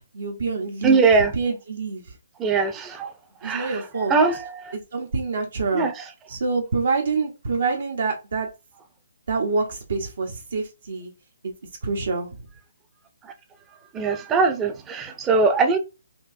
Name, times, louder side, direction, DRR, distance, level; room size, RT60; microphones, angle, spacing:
voice 1, 0.1-1.1 1.3-2.2 3.4-4.1 4.7-5.9 6.3-8.5 9.3-11.1 11.4-11.5 11.8-12.3, right 4 dB, 70° right, 0.9 m, -26 dB
voice 2, 0.8-1.3 2.4-3.1 3.4-3.7 4.1-4.4 5.7-5.9 13.9-15.8, right 4 dB, 15° right, 0.5 m, -20 dB
4.3 x 2.5 x 2.7 m
hypercardioid pair, 155°, 0 cm